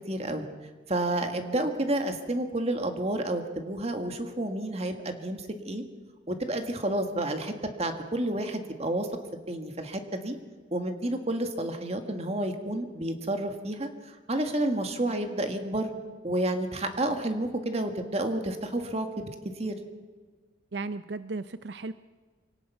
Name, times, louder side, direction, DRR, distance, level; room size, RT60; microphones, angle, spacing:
voice 1, 0.1-0.5 0.9-5.8 6.3-9.1 9.5-10.4 10.7-15.9 16.2-19.1 19.6-19.7, right 1 dB, 35° right, 6 dB, 1.8 m, -30 dB
voice 2, 20.7-21.9, right 3 dB, 75° right, 13 dB, 0.6 m, -35 dB
25.0 x 18.0 x 5.8 m, 1.5 s
head